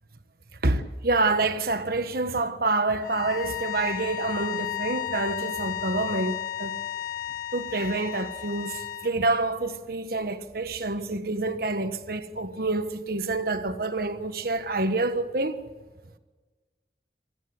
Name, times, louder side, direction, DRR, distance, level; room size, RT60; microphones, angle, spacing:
voice 1, 0.6-6.8 7.5-15.6, right 2 dB, 55° right, 1.5 m, -27 dB
sound 1, 3.0-9.1, left 12 dB, 50° left, 1.8 m, -33 dB
26.5 x 18.0 x 8.0 m
head